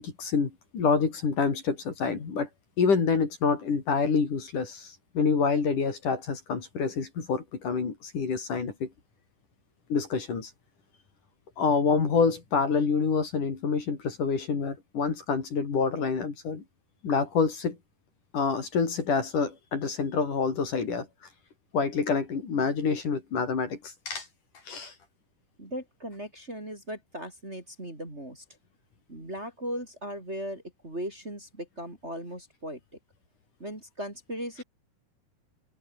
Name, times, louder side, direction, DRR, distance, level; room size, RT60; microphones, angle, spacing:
voice 1, 0.0-2.5 2.8-8.9 9.9-10.5 11.6-16.6 17.0-17.8 18.3-21.1 21.7-24.3 24.7-24.9, left 5 dB, 55° left, 5.3 m, -27 dB
voice 2, 25.6-28.4 29.1-32.8 33.6-34.6, equal, 15° right, 4.5 m, -38 dB
open air
omnidirectional pair, 4.5 m